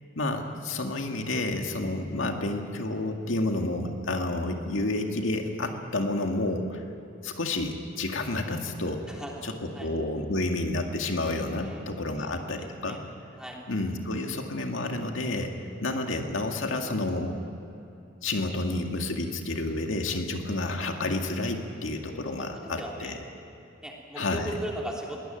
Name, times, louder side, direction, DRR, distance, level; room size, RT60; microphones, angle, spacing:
voice 1, 0.2-6.8 7.2-13.0 13.7-15.5 15.8-17.4 18.2-23.2 24.2-24.5, left 2 dB, 80° left, 3 dB, 2.1 m, -30 dB
voice 2, 9.1-9.4 9.7-9.9 11.6-11.8 12.2-13.0 13.4-13.6 22.4-23.2 23.8-25.2, right 1 dB, 5° right, -2 dB, 3.4 m, -38 dB
22.0 x 18.0 x 9.2 m, 2.8 s
head